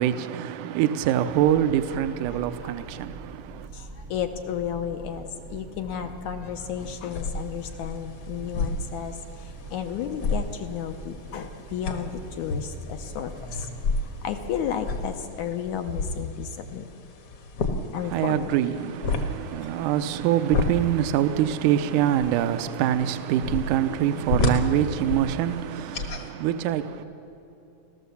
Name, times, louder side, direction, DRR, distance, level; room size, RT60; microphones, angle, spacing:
voice 1, 0.0-3.7 18.1-27.0, right 11 dB, 80° right, 2.1 m, -25 dB
Train, 1.3-15.2, right 3 dB, 50° right, 0.8 m, -43 dB
voice 2, 2.3-2.8 3.7-16.9 17.9-18.5 19.8-19.9, left 8 dB, 75° left, 2.0 m, -33 dB
sound 1, 6.8-26.3, left 2 dB, 55° left, 1.7 m, -32 dB
29.5 x 13.5 x 7.0 m
omnidirectional pair, 3.9 m